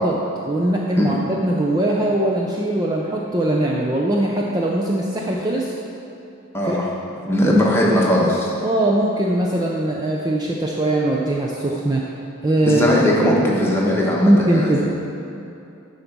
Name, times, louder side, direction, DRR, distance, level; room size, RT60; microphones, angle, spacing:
voice 1, 0.5-5.8 6.7-6.8 7.4-8.0 8.6-12.0 12.4-12.8 13.2-13.5 14.2-14.8, right 1 dB, 20° right, -2 dB, 0.5 m, -21 dB
voice 2, 6.5-6.9 7.2-8.5 12.7-14.8, left 1 dB, 10° left, -4 dB, 1.1 m, -19 dB
10.0 x 4.0 x 6.0 m, 2.8 s
head